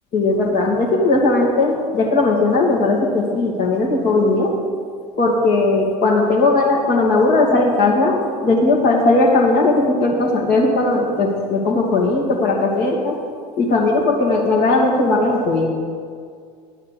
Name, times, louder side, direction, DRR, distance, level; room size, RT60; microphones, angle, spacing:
voice 1, 0.1-4.5 5.2-13.1 13.6-15.7, left 2 dB, 45° left, -1 dB, 2.5 m, -17 dB
11.5 x 9.4 x 5.1 m, 2.1 s
figure-of-eight pair, 70°, 21 cm